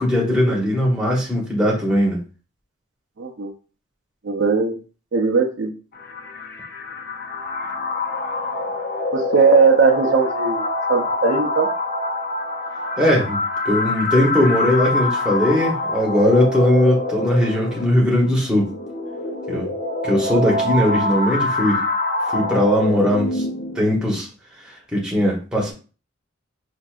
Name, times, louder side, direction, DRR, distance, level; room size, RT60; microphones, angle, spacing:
voice 1, 0.0-2.2 13.0-13.4 13.6-18.7 19.5-19.7 20.0-21.8 22.3-23.4 23.7-24.3 24.6-25.7, left 1 dB, 5° right, -4 dB, 0.9 m, -19 dB
voice 2, 3.2-3.5 4.2-4.8 5.1-5.7 9.1-11.7, right 4 dB, 60° right, 2 dB, 0.5 m, -18 dB
sound 1, 5.9-23.9, left 2 dB, 45° left, 0.5 m, -25 dB
4.5 x 2.6 x 2.4 m, 0.35 s
head